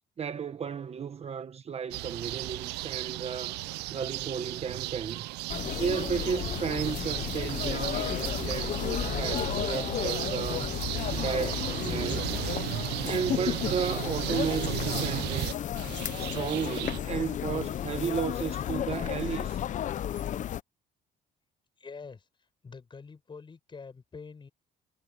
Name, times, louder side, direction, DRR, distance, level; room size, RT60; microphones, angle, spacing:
voice 1, 0.2-3.6 3.9-5.3 5.8-10.7 11.1-12.5 13.0-15.6 16.2-19.6, right 6 dB, 40° right, 1.3 m, -34 dB
sound 1, 1.9-17.0, right 20 dB, 85° right, 0.4 m, -35 dB
sound 2, 5.5-20.6, left 10 dB, 45° left, 0.7 m, -33 dB
voice 2, 21.8-22.3 22.6-24.5, left 5 dB, 30° left, 6.2 m, -45 dB
cardioid pair, 110°, 17 cm